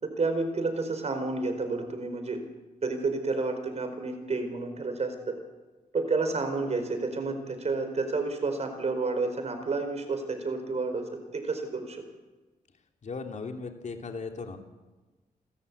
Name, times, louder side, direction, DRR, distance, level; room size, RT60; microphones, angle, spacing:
voice 1, 0.0-2.4 2.8-5.4 5.9-12.0, right 3 dB, 50° right, 7 dB, 4.5 m, -30 dB
voice 2, 13.0-14.6, left 4 dB, 55° left, 4 dB, 2.7 m, -37 dB
29.0 x 13.5 x 8.3 m, 1.2 s
cardioid pair, 90°, 15 cm